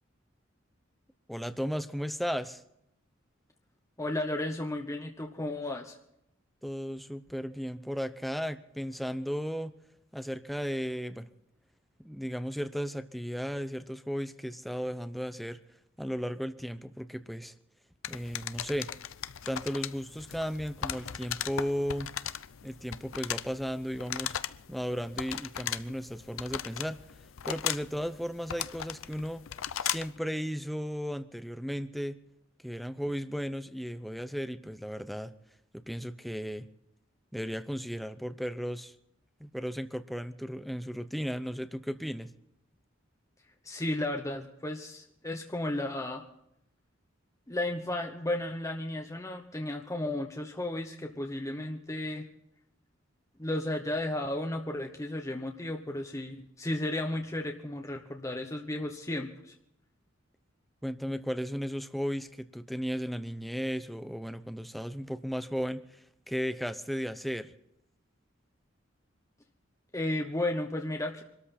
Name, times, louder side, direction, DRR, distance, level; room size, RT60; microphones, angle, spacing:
voice 1, 1.3-2.6 6.6-9.8 10.1-11.3 12.0-15.6 16.0-17.5 18.1-18.9 19.5-22.1 22.6-24.3 24.7-27.0 27.4-29.4 29.8-32.2 32.6-35.3 35.7-36.7 37.3-38.9 39.4-42.3 60.8-67.5, equal, ahead, 12 dB, 0.6 m, -35 dB
voice 2, 4.0-6.0 43.6-46.2 47.5-52.2 53.4-59.5 69.9-71.2, left 1 dB, 15° left, 3 dB, 1.0 m, -34 dB
sound 1, 18.0-30.2, left 10 dB, 85° left, 0.6 m, -38 dB
24.5 x 13.5 x 4.2 m, 0.78 s
head